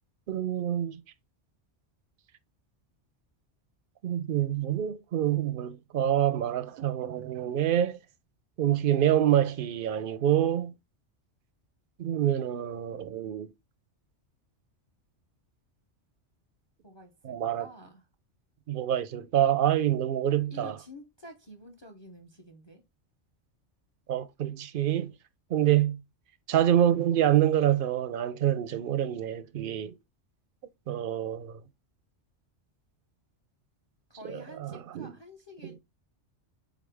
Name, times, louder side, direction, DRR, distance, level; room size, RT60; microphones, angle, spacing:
voice 1, 0.3-1.0 4.0-8.0 8.6-10.7 12.0-13.5 17.2-17.7 18.7-20.8 24.1-25.1 25.5-26.0 26.5-30.0 30.9-31.6 34.2-35.1 35.6-35.8, right 11 dB, 60° right, 0.6 m, -26 dB
voice 2, 16.8-18.0 20.5-22.8 34.1-35.8, left 1 dB, 30° left, 0.6 m, -49 dB
3.8 x 3.7 x 3.3 m
omnidirectional pair, 1.2 m